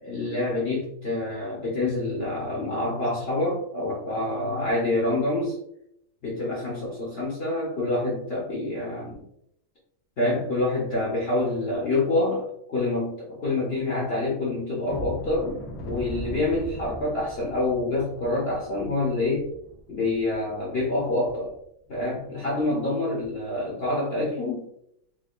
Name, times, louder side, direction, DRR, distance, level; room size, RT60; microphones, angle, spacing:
voice 1, 0.0-5.6 6.2-9.2 10.2-19.5 19.9-21.5 21.9-24.7, left 2 dB, 65° left, -5 dB, 0.6 m, -27 dB
sound 1, 14.9-21.6 22.0-22.1 22.5-22.7 23.2-23.3, equal, 90° left, 1.5 m, -40 dB
4.7 x 2.2 x 2.4 m, 0.75 s
omnidirectional pair, 2.1 m